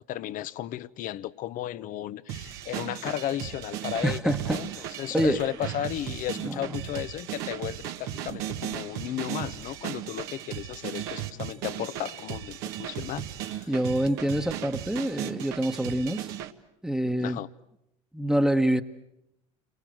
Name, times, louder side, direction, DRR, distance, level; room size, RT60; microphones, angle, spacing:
voice 1, 0.1-13.7 17.2-17.5, left 12 dB, 50° left, 1.0 m, -34 dB
sound 1, 2.3-16.5, right 11 dB, 65° right, 1.7 m, -36 dB
voice 2, 4.0-4.6 5.1-5.4 6.4-6.6 13.7-16.3 16.8-17.4 18.1-18.8, right 1 dB, 5° right, 1.4 m, -26 dB
30.0 x 24.5 x 7.9 m
hypercardioid pair, 75°, 17 cm